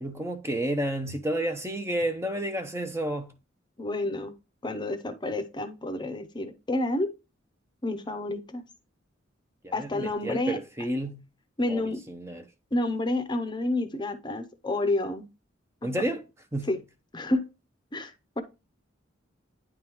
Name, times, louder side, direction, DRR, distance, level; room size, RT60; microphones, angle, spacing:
voice 1, 0.0-3.3 9.6-11.2 11.7-12.5 15.8-16.2 16.5-16.8, right 1 dB, 15° right, 0.7 m, -31 dB
voice 2, 3.8-4.3 4.6-7.1 7.8-8.6 9.7-10.6 11.6-12.0 12.7-15.3 16.7-16.8 17.1-17.4 17.9-18.4, left 2 dB, 25° left, 0.7 m, -29 dB
9.7 x 3.6 x 3.0 m
head